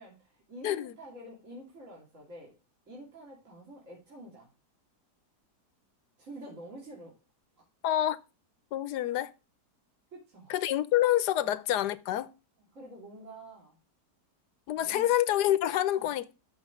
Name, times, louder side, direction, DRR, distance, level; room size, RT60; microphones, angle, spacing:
voice 1, 0.0-2.5 2.9-4.5 6.2-7.2 10.1-10.5 11.4-11.5 12.7-13.8 14.8-15.1 15.9-16.1, right 1 dB, 50° right, 3.4 m, -48 dB
voice 2, 0.6-0.9 7.8-8.2 8.7-9.3 10.5-12.3 14.7-16.3, left 13 dB, 80° left, 1.2 m, -27 dB
13.0 x 5.2 x 3.6 m
omnidirectional pair, 1.8 m